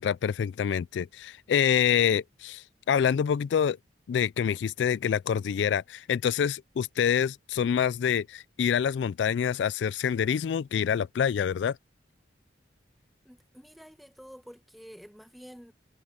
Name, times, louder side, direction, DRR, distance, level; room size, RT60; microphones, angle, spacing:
voice 1, 0.0-3.8 4.1-11.8, left 8 dB, 75° left, 0.3 m, -26 dB
voice 2, 13.2-15.7, equal, ahead, 1.2 m, -49 dB
head